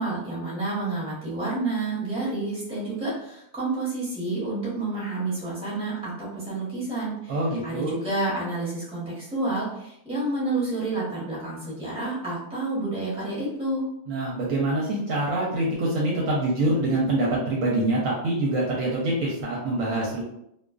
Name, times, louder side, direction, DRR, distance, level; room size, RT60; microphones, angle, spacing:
voice 1, 0.0-7.3 7.6-13.8, right 2 dB, 5° right, -8 dB, 0.8 m, -29 dB
voice 2, 7.3-7.9 14.1-20.2, right 2 dB, 70° right, -4 dB, 0.9 m, -25 dB
2.4 x 2.3 x 2.3 m, 0.76 s
omnidirectional pair, 1.6 m